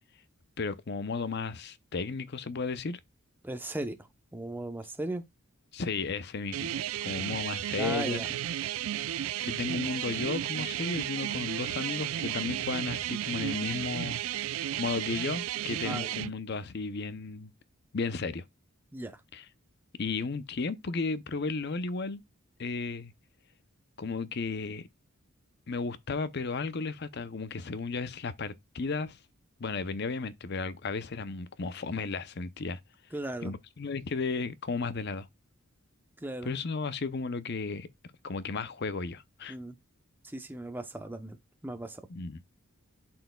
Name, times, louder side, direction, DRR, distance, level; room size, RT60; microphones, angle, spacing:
voice 1, 0.6-3.0 5.7-6.7 7.0-8.2 9.4-14.2 14.8-17.5 17.9-18.4 19.3-19.4 20.0-22.2 22.6-23.1 24.0-24.9 25.7-29.2 29.6-32.8 33.4-35.3 36.4-37.9 38.2-39.6 42.1-42.4, left 4 dB, 45° left, 0.6 m, -34 dB
voice 2, 3.4-4.0 4.3-5.2 7.8-8.3 15.8-16.1 18.9-19.2 33.1-33.5 36.2-36.6 39.5-39.8 40.2-41.4 41.6-42.1, right 1 dB, 10° right, 0.7 m, -37 dB
sound 1, 6.5-16.3, right 12 dB, 70° right, 0.3 m, -33 dB
11.5 x 4.4 x 2.2 m
head